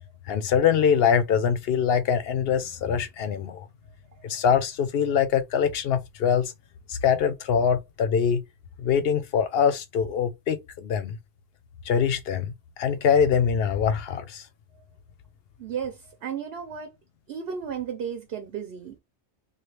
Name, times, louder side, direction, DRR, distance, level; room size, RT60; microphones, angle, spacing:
voice 1, 0.3-3.7 4.2-6.5 6.9-8.4 8.8-11.2 11.8-12.5 12.8-14.5, left 7 dB, 60° left, 0.8 m, -23 dB
voice 2, 15.6-16.9 17.3-19.0, right 7 dB, 60° right, 1.0 m, -34 dB
3.1 x 2.4 x 3.2 m
omnidirectional pair, 1.2 m